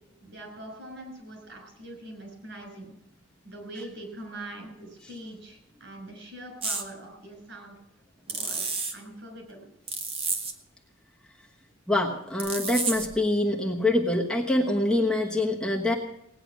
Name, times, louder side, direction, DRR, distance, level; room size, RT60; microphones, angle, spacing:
voice 1, 0.2-2.9 3.4-7.8 8.3-9.6, right 1 dB, 60° right, 2 dB, 5.9 m, -43 dB
sound 1, 6.6-6.9 8.3-8.9 9.9-10.5 12.4-13.2, right 4 dB, 25° right, 1.3 m, -30 dB
voice 2, 11.9-15.9, left 1 dB, 5° left, -2 dB, 1.1 m, -25 dB
18.5 x 9.8 x 6.1 m, 0.85 s
head